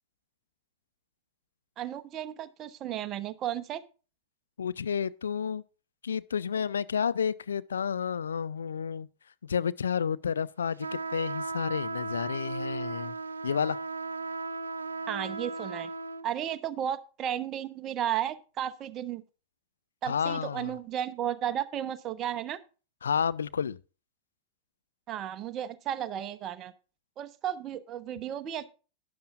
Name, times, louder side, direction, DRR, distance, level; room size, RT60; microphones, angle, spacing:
voice 1, 1.8-3.8 15.1-15.9 16.2-19.2 20.0-22.6 25.1-26.7 27.2-28.7, right 10 dB, 30° right, 0.9 m, -34 dB
voice 2, 4.6-5.6 6.0-9.1 9.4-10.9 11.1-13.1 13.4-13.8 20.1-20.7 23.0-23.8, left 7 dB, 70° left, 0.4 m, -30 dB
sound 1, 10.8-16.2, right 3 dB, 75° right, 0.7 m, -36 dB
12.0 x 10.5 x 2.4 m
figure-of-eight pair, 90°, 0 cm